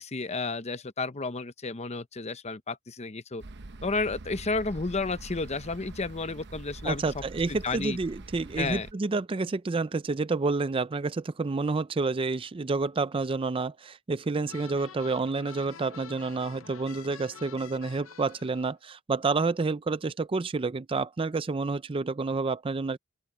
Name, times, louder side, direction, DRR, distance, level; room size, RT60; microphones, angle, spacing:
voice 1, 0.0-3.4 3.8-7.2 7.5-8.0 8.6-8.9, left 3 dB, 30° left, 0.8 m, -32 dB
sound 1, 3.4-8.9, right 2 dB, 55° right, 0.9 m, -44 dB
voice 2, 6.8-23.0, right 3 dB, 25° right, 0.4 m, -29 dB
sound 2, 14.5-18.7, left 6 dB, 75° left, 0.8 m, -47 dB
open air
head